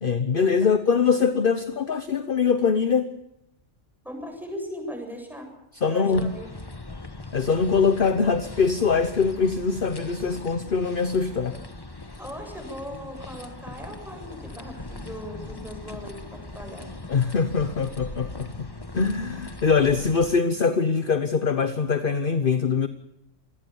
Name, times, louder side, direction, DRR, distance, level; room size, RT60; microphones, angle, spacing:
voice 1, 0.0-3.1 5.8-6.3 7.3-11.6 17.1-18.7 18.9-22.9, left 5 dB, 45° left, 11 dB, 1.2 m, -23 dB
voice 2, 4.0-5.5 5.9-6.5 12.2-16.9, equal, ahead, 3 dB, 7.4 m, -38 dB
sound 1, 6.1-20.4, left 2 dB, 20° left, 1.3 m, -40 dB
27.5 x 20.0 x 7.1 m, 0.83 s
omnidirectional pair, 1.3 m